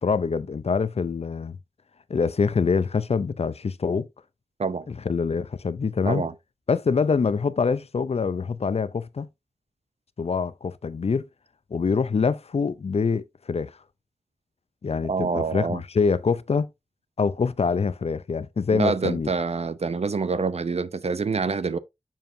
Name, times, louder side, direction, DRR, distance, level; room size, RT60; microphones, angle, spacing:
voice 1, 0.0-1.6 2.1-4.1 4.9-6.3 6.7-9.3 10.2-11.3 11.7-13.8 14.8-16.7 17.2-19.3, left 5 dB, 60° left, 0.5 m, -25 dB
voice 2, 15.1-15.8 18.7-21.8, right 4 dB, 65° right, 0.6 m, -26 dB
7.2 x 5.8 x 2.7 m
wide cardioid pair, 75°, 12 cm